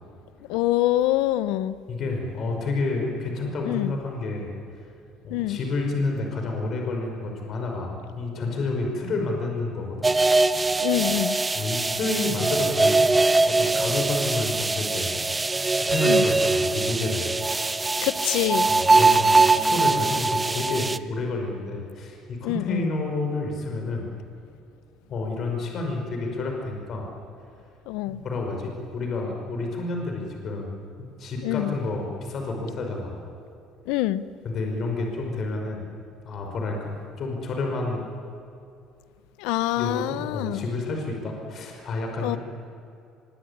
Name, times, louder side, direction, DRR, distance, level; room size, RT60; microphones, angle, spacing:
voice 1, 0.5-1.8 3.6-4.0 5.3-5.6 10.8-11.4 16.1-16.2 18.0-18.7 22.4-22.9 27.9-28.2 31.4-31.7 33.9-34.2 39.4-40.7 42.2-42.4, left 15 dB, 85° left, 15 dB, 1.0 m, -25 dB
voice 2, 1.9-4.5 5.2-10.1 11.5-13.1 13.5-15.2 15.7-17.3 18.7-24.1 25.1-27.1 28.1-30.7 31.0-33.3 34.4-35.8 36.3-38.0 39.8-42.4, left 3 dB, 45° left, 2 dB, 5.4 m, -29 dB
sound 1, 10.0-21.0, right 3 dB, 15° right, 0.7 m, -22 dB
25.0 x 23.0 x 10.0 m, 2.6 s
cardioid pair, 135°, 0 cm